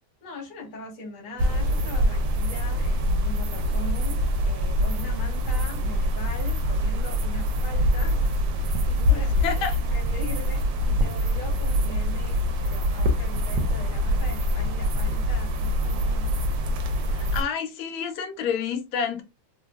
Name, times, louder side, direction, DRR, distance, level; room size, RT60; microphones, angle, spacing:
voice 1, 0.2-16.3 16.8-17.1, left 2 dB, 40° left, 0.8 m, -41 dB
sound 1, 1.4-17.4, equal, 75° right, 1.2 m, -24 dB
voice 2, 9.4-9.8 17.1-19.2, left 6 dB, 85° left, 1.4 m, -29 dB
3.2 x 2.2 x 2.3 m
omnidirectional pair, 2.1 m